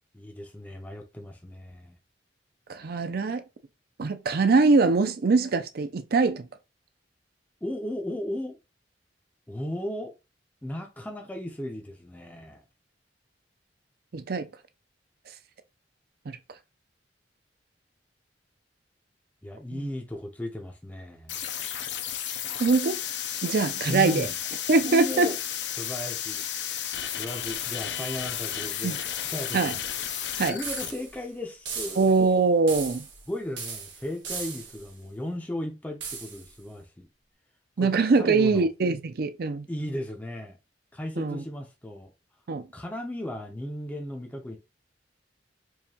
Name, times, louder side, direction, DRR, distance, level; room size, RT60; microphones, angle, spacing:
voice 1, 0.1-2.0 7.6-8.6 9.5-10.1 10.6-12.6 19.4-21.4 23.9-24.4 24.8-25.3 25.7-26.4 27.2-29.9 30.5-32.1 33.3-37.1 37.8-37.9 38.2-38.7 39.7-40.6 40.9-42.1 42.7-44.6, left 1 dB, 10° left, 0.5 m, -35 dB
voice 2, 2.7-3.4 4.0-6.5 14.1-14.5 16.3-16.4 19.7-19.9 22.6-23.0 23.4-24.3 24.7-25.3 28.8-29.0 29.5-29.7 30.4-30.6 32.0-33.0 37.8-39.6 41.2-41.4 42.5-42.6, right 4 dB, 55° right, 0.5 m, -23 dB
sound 1, 21.3-30.9, left 10 dB, 70° left, 0.5 m, -33 dB
sound 2, 30.6-31.2 31.7-32.3 32.7-33.3 33.6-34.9 36.0-36.5, right 5 dB, 85° right, 1.4 m, -37 dB
4.6 x 2.6 x 2.8 m
head